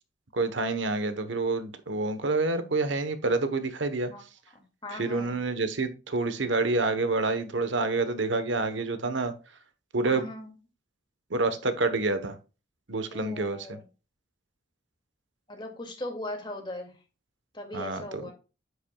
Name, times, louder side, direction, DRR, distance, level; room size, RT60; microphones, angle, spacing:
voice 1, 0.3-4.1 4.9-9.3 9.9-10.3 11.3-12.4 12.9-13.8 17.7-18.3, right 3 dB, 75° right, 1.1 m, -28 dB
voice 2, 4.8-5.4 10.1-10.5 13.1-13.8 15.5-16.9 17.5-18.3, left 1 dB, 25° left, 2.3 m, -39 dB
10.0 x 8.2 x 2.3 m
head